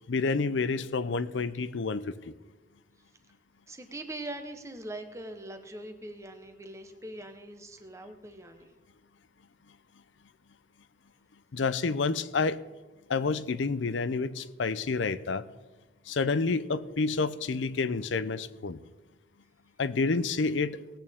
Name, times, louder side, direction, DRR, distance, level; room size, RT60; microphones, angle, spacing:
voice 1, 0.1-2.3 11.5-12.6 13.1-15.4 16.1-18.8 19.8-20.8, left 4 dB, 80° left, 15 dB, 0.6 m, -29 dB
voice 2, 3.7-8.7, right 1 dB, 15° right, 6 dB, 1.0 m, -42 dB
18.5 x 8.7 x 3.6 m, 1.2 s
head